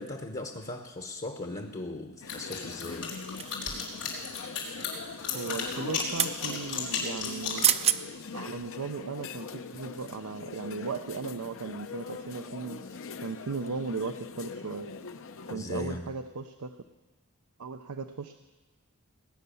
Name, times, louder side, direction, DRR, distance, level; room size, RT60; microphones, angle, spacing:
voice 1, 0.0-3.2 15.5-16.1, left 2 dB, 35° left, 5 dB, 0.9 m, -38 dB
sound 1, 2.2-15.6, left 4 dB, 65° left, 0.7 m, -42 dB
sound 2, 2.3-7.7, left 6 dB, 85° left, 4.7 m, -34 dB
sound 3, 3.4-4.0 5.7-6.4 7.3-7.4 7.6-8.0 8.5-8.7, right 9 dB, 30° right, 0.5 m, -28 dB
voice 2, 5.3-7.7 8.3-12.8 13.2-14.9 15.5-16.7 17.6-18.4, right 4 dB, 90° right, 8 dB, 0.6 m, -37 dB
19.0 x 9.5 x 7.0 m, 1.2 s
head